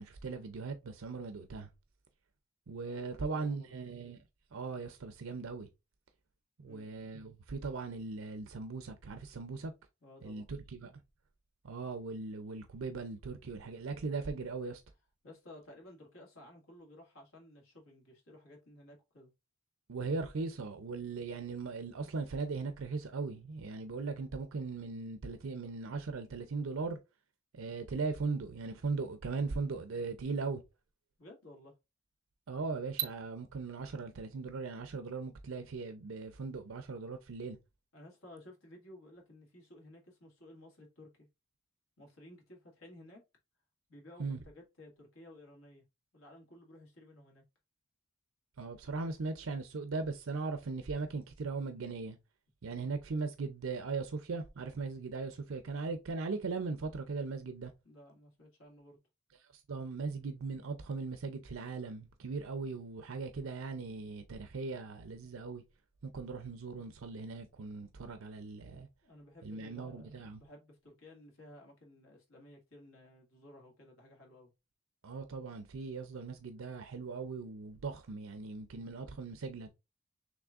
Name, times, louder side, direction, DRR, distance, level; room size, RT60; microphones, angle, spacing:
voice 1, 0.0-1.7 2.7-4.2 4.5-5.7 6.6-9.7 10.2-10.9 11.6-14.8 19.9-27.0 27.5-30.6 32.5-37.6 44.2-44.4 48.6-52.2 52.6-57.7 59.7-65.6 66.0-68.9 69.4-70.4 75.0-79.7, right 4 dB, 85° right, 0.6 m, -39 dB
voice 2, 2.8-3.7 6.6-6.9 10.0-10.5 15.2-19.3 31.2-31.7 37.9-41.3 42.0-43.2 43.9-45.8 46.1-47.4 57.8-59.0 69.0-74.5, left 1 dB, 80° left, 2.0 m, -55 dB
6.1 x 3.2 x 2.4 m
head